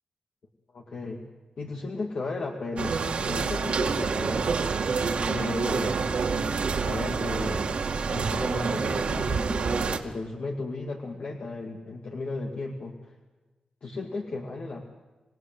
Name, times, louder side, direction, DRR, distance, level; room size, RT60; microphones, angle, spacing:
voice 1, 0.7-1.2 1.6-4.5 5.2-6.1 6.8-13.2 13.8-14.8, left 3 dB, 55° left, 0 dB, 2.3 m, -35 dB
sound 1, 2.8-10.0, right 5 dB, 65° right, 2.2 m, -27 dB
27.0 x 18.5 x 7.8 m, 1.2 s
wide cardioid pair, 145°, 2 cm